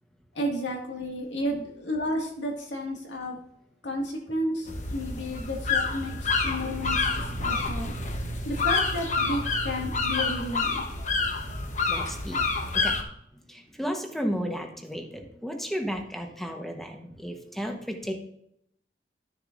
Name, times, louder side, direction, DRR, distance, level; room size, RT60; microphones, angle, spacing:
voice 1, 0.4-3.4 3.8-7.1 7.4-7.9 8.5-10.8, equal, 80° left, 0 dB, 2.0 m, -32 dB
sound 1, 4.7-13.0, left 4 dB, 40° left, 1.0 m, -28 dB
voice 2, 11.9-13.0 13.5-18.1, equal, ahead, 3 dB, 1.0 m, -33 dB
12.0 x 6.7 x 2.5 m, 0.73 s
head